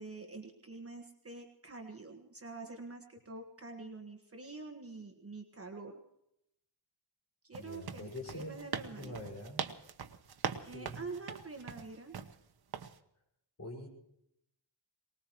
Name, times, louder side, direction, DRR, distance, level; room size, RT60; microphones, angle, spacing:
voice 1, 0.0-6.0 7.4-9.1 10.6-12.2, right 3 dB, 30° right, 3 dB, 1.5 m, -46 dB
sound 1, 7.5-12.4 12.7-13.0, right 7 dB, 55° right, 1.0 m, -41 dB
voice 2, 7.6-8.6 8.9-9.7 10.6-11.0 13.6-13.9, left 1 dB, 35° left, -2 dB, 5.7 m, -45 dB
23.5 x 19.5 x 3.1 m, 0.78 s
wide cardioid pair, 165°, 46 cm